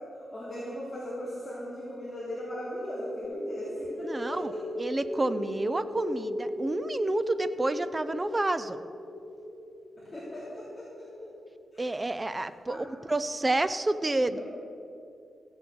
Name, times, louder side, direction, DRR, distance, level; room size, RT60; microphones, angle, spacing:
voice 1, 0.1-4.6 10.0-11.3 11.7-11.9 12.7-12.8 14.2-14.4, equal, 15° left, -10 dB, 3.3 m, -38 dB
sound 1, 3.2-11.6, left 1 dB, 35° left, 2.9 m, -37 dB
voice 2, 4.0-4.5 4.8-8.8 11.8-14.4, right 2 dB, 15° right, 13 dB, 0.5 m, -29 dB
15.0 x 7.7 x 7.9 m, 2.5 s
wide cardioid pair, 165°, 0 cm